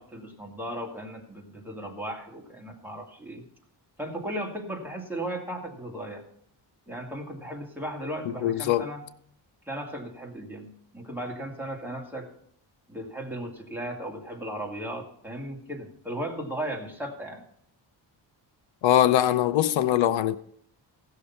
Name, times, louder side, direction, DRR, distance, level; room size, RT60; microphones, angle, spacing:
voice 1, 0.0-3.4 4.0-6.3 6.9-9.0 9.7-12.3 12.9-17.4, right 1 dB, 5° right, 2.2 m, -36 dB
voice 2, 8.4-8.9 18.8-20.4, left 12 dB, 90° left, 0.6 m, -22 dB
16.0 x 6.6 x 5.7 m
wide cardioid pair, 120°, 45 cm